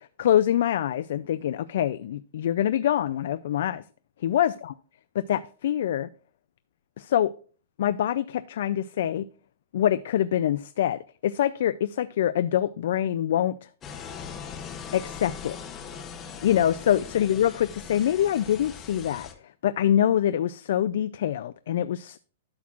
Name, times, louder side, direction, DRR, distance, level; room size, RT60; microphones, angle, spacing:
voice 1, 0.2-3.8 4.2-4.7 5.1-6.1 7.0-7.3 7.8-9.3 9.7-13.5 14.9-15.7 16.4-19.3 19.6-22.2, left 11 dB, 50° left, 0.3 m, -25 dB
sound 1, 13.8-19.3, left 7 dB, 15° left, 0.8 m, -40 dB
12.5 x 6.0 x 2.4 m
hypercardioid pair, 175°, 0 cm